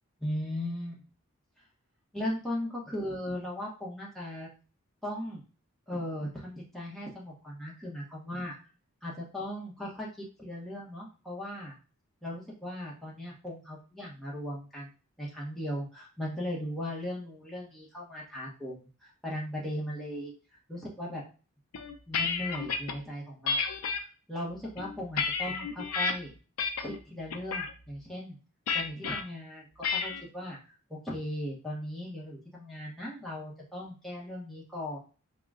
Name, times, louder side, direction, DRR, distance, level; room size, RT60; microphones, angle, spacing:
voice 1, 0.2-1.0 2.1-4.5 5.0-5.4 5.9-8.6 9.0-11.8 12.2-14.9 15.2-20.3 20.7-21.2 22.1-23.7 24.0-26.3 26.8-28.4 28.7-35.0, left 1 dB, ahead, -5 dB, 0.9 m, -38 dB
sound 1, 21.7-22.9 23.5-24.0 24.6-26.1 26.6-27.0 27.3-27.7 28.7-29.2 29.8-30.2, left 5 dB, 80° left, 0.5 m, -31 dB
3.8 x 2.1 x 3.5 m, 0.35 s
head